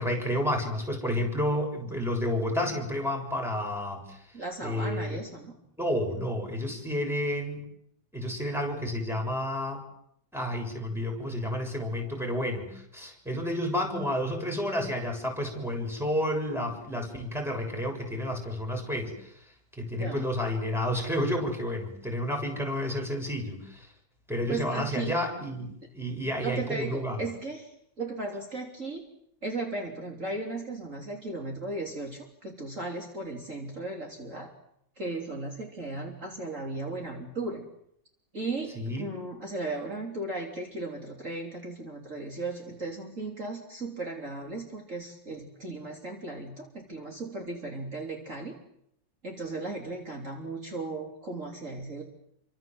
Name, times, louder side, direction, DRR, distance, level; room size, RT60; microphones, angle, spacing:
voice 1, 0.0-4.2 4.6-5.2 5.8-7.6 8.1-9.8 10.3-19.4 19.8-23.9 24.3-27.2 38.8-39.1, equal, ahead, 2 dB, 7.1 m, -30 dB
voice 2, 4.3-5.5 19.9-20.2 24.5-25.2 26.4-27.7 28.0-29.0 29.4-34.5 35.0-37.6 38.3-48.6 49.2-52.0, right 2 dB, 40° right, 1 dB, 3.8 m, -36 dB
29.0 x 25.5 x 7.9 m, 0.73 s
omnidirectional pair, 2.1 m